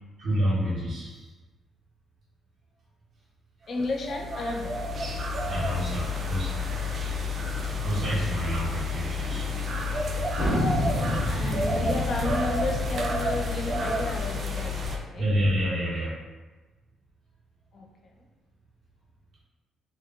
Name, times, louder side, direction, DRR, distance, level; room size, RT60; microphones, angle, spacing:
voice 1, 0.2-1.2 5.5-6.6 7.8-9.5 15.2-16.1, equal, 60° right, -7 dB, 1.0 m, -28 dB
voice 2, 3.7-4.9 7.8-8.3 10.7-15.3 17.7-17.9, left 2 dB, 55° left, 1 dB, 0.5 m, -33 dB
sound 1, 3.8-15.0, left 2 dB, 45° right, 0.4 m, -30 dB
sound 2, 10.3-14.0, left 1 dB, 80° left, 1.3 m, -29 dB
2.9 x 2.2 x 2.4 m, 1.2 s
cardioid pair, 90°, 0 cm